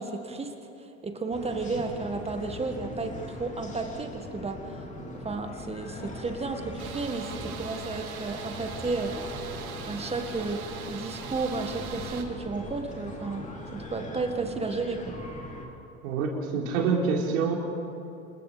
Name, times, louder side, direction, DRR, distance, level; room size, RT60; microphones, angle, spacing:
voice 1, 0.0-4.9 5.1-9.2 9.9-15.2, right 3 dB, 15° right, 5 dB, 1.8 m, -33 dB
sound 1, 1.3-15.7, left 1 dB, 15° left, 3.5 m, -41 dB
sound 2, 6.8-12.2, right 7 dB, 90° right, 2.5 m, -41 dB
voice 2, 16.0-17.5, right 5 dB, 70° right, 0 dB, 4.3 m, -26 dB
27.0 x 22.5 x 5.1 m, 2.8 s
hypercardioid pair, 115°, 42 cm